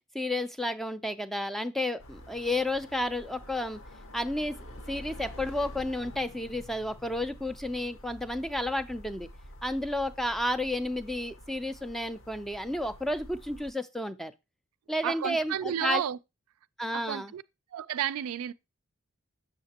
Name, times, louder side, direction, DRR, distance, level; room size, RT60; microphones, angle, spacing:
voice 1, 0.1-3.8 4.1-9.3 9.6-14.3 14.9-16.0 16.8-17.3, left 1 dB, ahead, 0.3 m, -31 dB
sound 1, 2.0-13.7, left 1 dB, 60° left, 0.8 m, -48 dB
voice 2, 15.0-16.2 16.9-17.4 17.7-18.5, right 9 dB, 75° right, 0.3 m, -32 dB
7.1 x 6.6 x 2.8 m
head